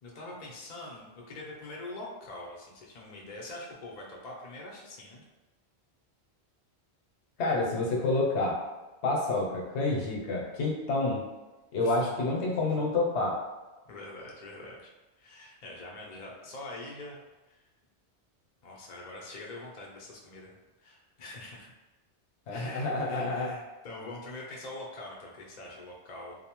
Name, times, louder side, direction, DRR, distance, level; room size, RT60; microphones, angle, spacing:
voice 1, 0.0-5.2 11.8-12.1 13.9-14.9 15.2-17.2 17.5-17.6 18.6-20.5 20.8-21.7 22.5-26.4, left 2 dB, 50° left, -2 dB, 0.6 m, -44 dB
voice 2, 7.4-8.7 9.0-11.3 11.7-13.4 22.5-23.5, left 2 dB, 80° left, -2 dB, 0.9 m, -28 dB
2.6 x 2.0 x 2.9 m, 1.1 s
omnidirectional pair, 1.1 m